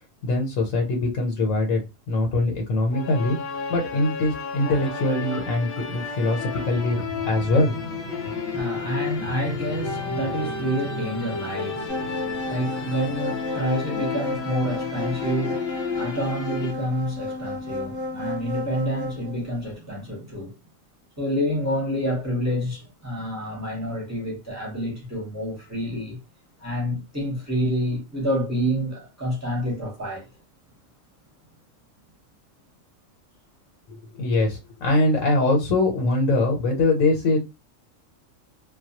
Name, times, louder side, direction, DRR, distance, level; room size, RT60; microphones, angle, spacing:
voice 1, 0.2-1.8 2.1-7.7 33.9-37.5, left 2 dB, 85° left, 1.0 m, -23 dB
sound 1, 2.9-16.7, left 5 dB, 60° left, 0.7 m, -32 dB
sound 2, 6.0-14.1, left 1 dB, 90° right, 1.0 m, -39 dB
voice 2, 8.2-20.5 21.2-26.2 26.6-30.3, equal, 15° right, 0.8 m, -28 dB
sound 3, 11.9-19.4, left 2 dB, 15° left, 0.9 m, -32 dB
2.2 x 2.0 x 2.7 m
omnidirectional pair, 1.3 m